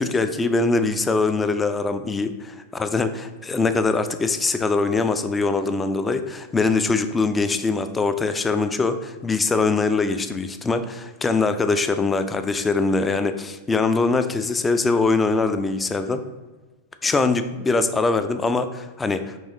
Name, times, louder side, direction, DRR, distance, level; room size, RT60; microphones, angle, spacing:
voice 1, 0.0-2.3 2.7-16.2 17.0-19.4, left 3 dB, 15° left, 10 dB, 0.3 m, -22 dB
6.2 x 3.1 x 2.6 m, 1.2 s
figure-of-eight pair, 90°, 0 cm